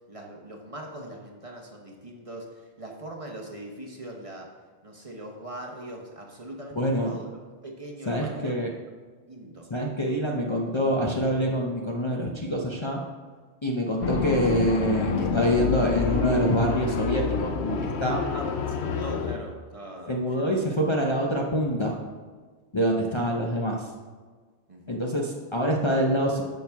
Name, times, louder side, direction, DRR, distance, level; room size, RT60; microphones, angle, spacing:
voice 1, 0.1-4.5 4.8-7.2 7.6-8.6 9.3-9.7 18.3-20.5 24.7-25.0, right 1 dB, 30° right, 0 dB, 1.0 m, -41 dB
voice 2, 6.7-7.2 8.1-8.7 9.7-13.0 13.6-18.2 20.1-22.0 22.7-23.9 24.9-26.4, equal, 30° left, -2 dB, 0.7 m, -25 dB
sound 1, 14.0-19.4, left 6 dB, 70° left, 0.9 m, -28 dB
10.5 x 6.0 x 3.5 m, 1.5 s
omnidirectional pair, 1.2 m